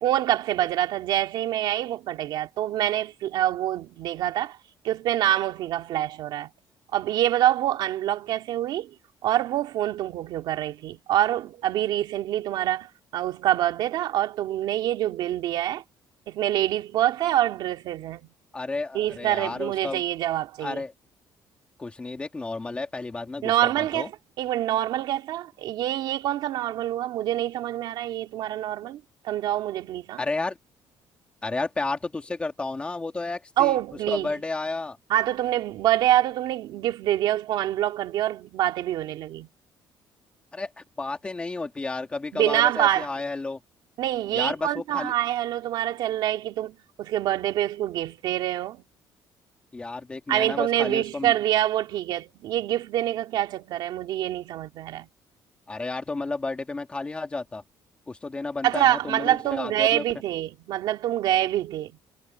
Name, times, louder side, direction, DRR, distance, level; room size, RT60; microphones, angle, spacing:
voice 1, 0.0-4.6 4.8-6.5 6.9-8.9 9.2-15.8 16.3-18.2 18.9-20.8 23.4-24.1 24.4-30.2 33.6-34.3 35.1-39.5 42.3-43.1 44.0-48.8 50.3-55.1 58.6-61.9, right 13 dB, 70° right, 2.3 m, -26 dB
voice 2, 18.5-20.0 20.6-20.9 21.8-24.1 30.2-30.6 31.4-33.8 34.1-35.0 40.5-43.6 44.3-45.1 49.7-51.3 55.7-57.6 58.1-60.0, left 3 dB, 15° left, 2.4 m, -32 dB
cardioid pair, 175°, 8 cm